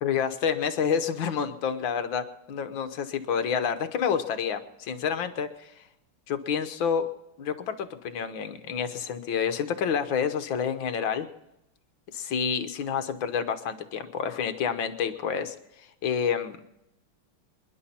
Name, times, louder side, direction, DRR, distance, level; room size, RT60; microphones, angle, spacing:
voice 1, 0.0-5.7 6.3-7.1 7.4-11.3 12.1-15.5 16.0-16.6, left 7 dB, 65° left, 9 dB, 1.7 m, -28 dB
27.5 x 11.0 x 4.3 m, 0.88 s
omnidirectional pair, 2.4 m